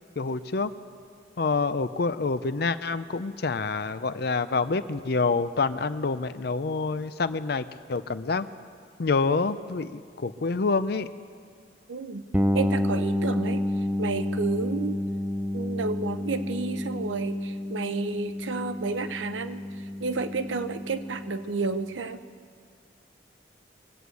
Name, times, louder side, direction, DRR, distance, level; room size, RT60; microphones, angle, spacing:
voice 1, 0.2-0.7 1.4-8.5 9.0-11.1, left 4 dB, 55° left, 13 dB, 0.5 m, -27 dB
voice 2, 11.9-12.2 12.5-13.6 14.0-15.0 15.5-19.6 20.0-22.2, right 4 dB, 85° right, 11 dB, 0.7 m, -31 dB
sound 1, 12.3-22.0, left 1 dB, 10° right, 0.5 m, -30 dB
22.0 x 7.9 x 8.3 m, 2.1 s
head